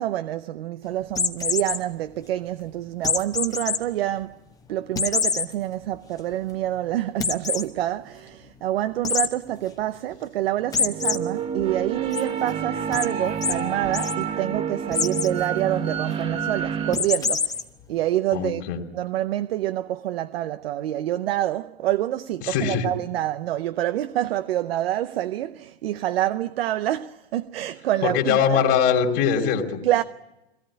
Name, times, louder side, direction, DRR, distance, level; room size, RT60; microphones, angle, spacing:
voice 1, 0.0-4.4 4.7-17.6 17.9-18.7 18.9-28.6 29.8-30.0, right 13 dB, 70° right, 0.8 m, -27 dB
sound 1, 1.1-1.8 3.0-3.8 4.2-4.3 5.0-5.5 5.9-6.0 6.3-6.4 7.2-7.6 9.0-9.3 10.7-11.2 11.6-12.2 12.9-13.1 13.4-13.5 13.8-14.1 14.9-15.3 16.9-17.6, left 5 dB, 10° left, 1.2 m, -24 dB
sound 2, 10.6-16.9, right 7 dB, 20° right, 1.1 m, -29 dB
voice 2, 18.3-18.8 22.4-22.9 28.0-29.8, left 7 dB, 40° left, 2.9 m, -22 dB
20.5 x 18.0 x 9.9 m
hypercardioid pair, 135°, 31 cm